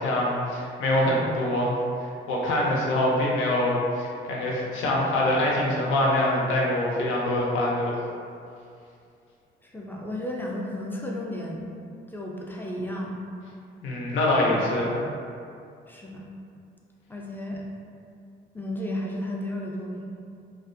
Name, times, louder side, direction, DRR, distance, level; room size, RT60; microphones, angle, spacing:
voice 1, 0.0-1.7 2.3-8.1 13.8-15.0, left 1 dB, 85° left, -3 dB, 0.5 m, -24 dB
voice 2, 9.6-11.6 12.1-13.2 15.9-16.3 17.1-17.7 18.5-20.1, left 1 dB, 10° left, -2 dB, 0.3 m, -33 dB
2.4 x 2.0 x 2.5 m, 2.4 s
cardioid pair, 90°, 20 cm